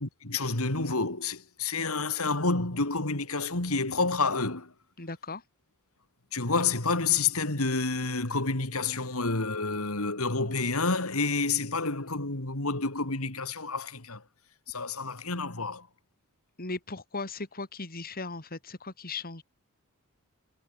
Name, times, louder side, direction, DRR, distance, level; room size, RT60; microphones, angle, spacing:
voice 1, 0.0-4.7 6.3-14.2 14.7-15.9, left 3 dB, 70° left, 3.3 m, -29 dB
voice 2, 5.0-5.4 16.6-19.4, left 3 dB, 45° left, 3.3 m, -37 dB
head